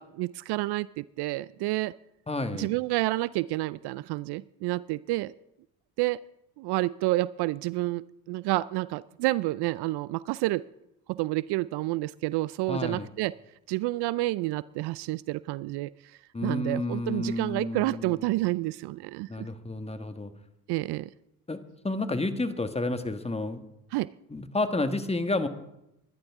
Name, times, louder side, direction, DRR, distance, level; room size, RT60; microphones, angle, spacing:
voice 1, 0.0-2.0 2.5-5.3 6.0-6.2 6.6-10.6 11.1-13.3 13.7-19.5 20.7-21.1 23.9-24.1, right 19 dB, 65° right, 20 dB, 0.5 m, -29 dB
voice 2, 2.3-2.7 12.7-13.1 16.3-18.2 19.3-20.3 21.5-23.6 24.3-25.5, left 2 dB, 15° left, 8 dB, 1.6 m, -30 dB
21.5 x 11.5 x 3.6 m, 0.84 s
supercardioid pair, 70°, 43 cm